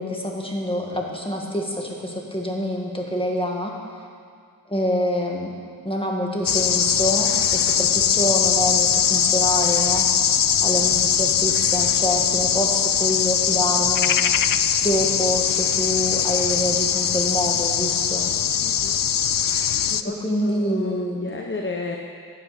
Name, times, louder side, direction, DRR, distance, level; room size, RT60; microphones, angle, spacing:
voice 1, 0.0-3.7 4.7-5.5 5.8-10.1 10.6-14.2 14.8-18.3 20.0-21.3, left 1 dB, 15° left, -1 dB, 2.2 m, -26 dB
sound 1, 6.5-20.0, left 8 dB, 60° left, 0.5 m, -21 dB
voice 2, 18.6-19.0 19.9-20.2 20.4-22.0, left 3 dB, 30° left, 2 dB, 1.0 m, -32 dB
16.0 x 9.9 x 5.2 m, 2.1 s
wide cardioid pair, 70°, 38 cm